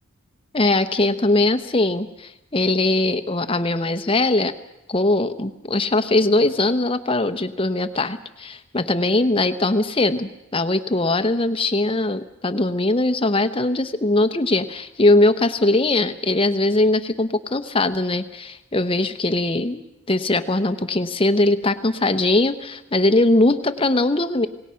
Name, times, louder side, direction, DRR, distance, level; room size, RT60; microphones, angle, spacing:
voice 1, 0.5-4.5 4.9-19.8 20.1-24.5, left 2 dB, 25° left, 10 dB, 0.9 m, -20 dB
27.5 x 18.5 x 5.7 m, 0.88 s
head